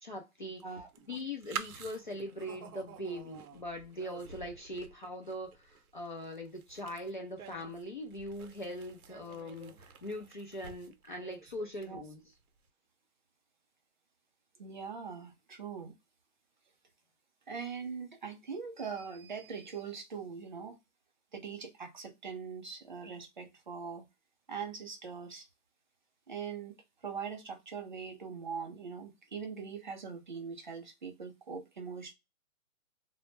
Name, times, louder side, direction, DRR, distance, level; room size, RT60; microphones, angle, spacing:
voice 1, 0.0-0.6 1.1-12.2, left 1 dB, 35° left, 0.4 m, -41 dB
sound 1, 0.6-12.3, right 7 dB, 85° right, 0.6 m, -48 dB
voice 2, 14.6-15.9 17.5-20.8 21.3-24.0 24.5-25.5 26.3-26.8 27.0-32.1, right 6 dB, 35° right, 0.5 m, -42 dB
2.0 x 2.0 x 3.1 m
hypercardioid pair, 165°, 42 cm